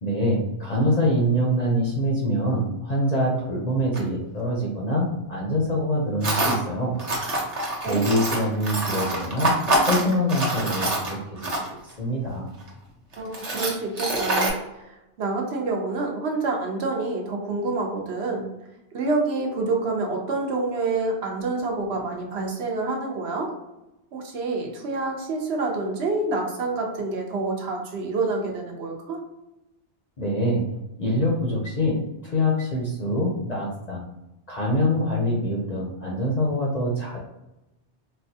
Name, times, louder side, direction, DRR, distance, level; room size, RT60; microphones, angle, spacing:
voice 1, 0.0-7.0 7.8-9.6 9.9-12.5 30.2-30.6 31.0-34.0 34.5-37.2, equal, 50° left, -3 dB, 0.6 m, -25 dB
Tools, 3.9-4.0 6.2-6.6 7.0-11.9 12.6-12.7 13.1-14.5, right 1 dB, 40° right, 0.8 m, -25 dB
voice 2, 13.2-18.5 18.9-23.5 24.1-29.2, right 3 dB, 70° right, 1 dB, 0.9 m, -27 dB
4.0 x 2.2 x 2.7 m, 0.94 s
omnidirectional pair, 1.2 m